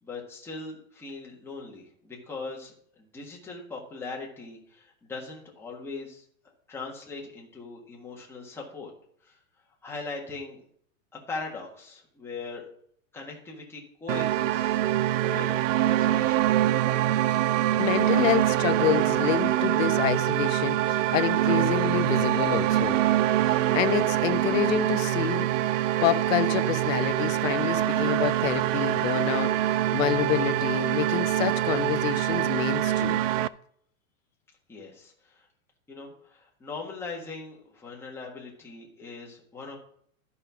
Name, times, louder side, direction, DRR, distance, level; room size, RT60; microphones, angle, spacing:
voice 1, 0.0-8.9 9.2-9.4 9.8-10.6 11.1-12.6 13.1-15.5 15.8-16.4 34.7-35.5 35.9-39.8, left 3 dB, 5° left, 1.5 m, -40 dB
sound 1, 14.1-33.5, right 13 dB, 65° right, 0.5 m, -24 dB
voice 2, 17.8-23.0 23.4-25.5 26.0-33.2, left 12 dB, 65° left, 0.9 m, -28 dB
12.0 x 5.5 x 5.9 m
supercardioid pair, 165°, 41 cm